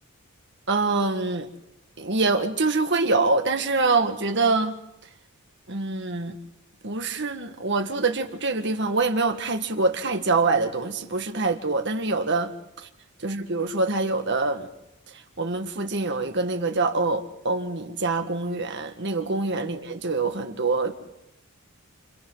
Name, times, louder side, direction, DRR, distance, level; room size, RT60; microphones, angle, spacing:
voice 1, 0.7-1.5 2.0-4.8 5.7-6.4 6.8-12.5 13.2-14.7 15.4-20.9, right 3 dB, 55° right, 1.8 m, -25 dB
29.5 x 29.5 x 4.0 m
head